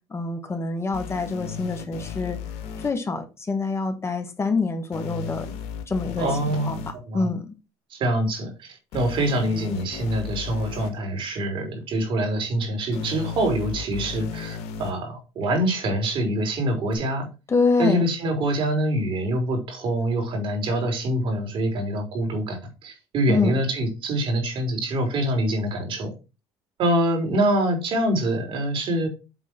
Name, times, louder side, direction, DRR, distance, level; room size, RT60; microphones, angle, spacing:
voice 1, 0.1-2.4 2.8-5.6 5.9-6.3 6.6-7.5 17.5-18.0 23.3-23.6, left 4 dB, 25° left, 6 dB, 1.4 m, -26 dB
sound 1, 0.9-2.9 4.9-6.9 8.9-10.9 12.9-14.9 16.9-17.0, left 6 dB, 75° left, 1.6 m, -35 dB
voice 2, 6.2-6.7 7.1-7.3 7.9-8.5 8.9-17.3 17.8-26.1 26.8-29.1, right 1 dB, 55° right, 4 dB, 3.7 m, -25 dB
8.0 x 3.8 x 5.9 m, 0.30 s
supercardioid pair, 100°, 11 cm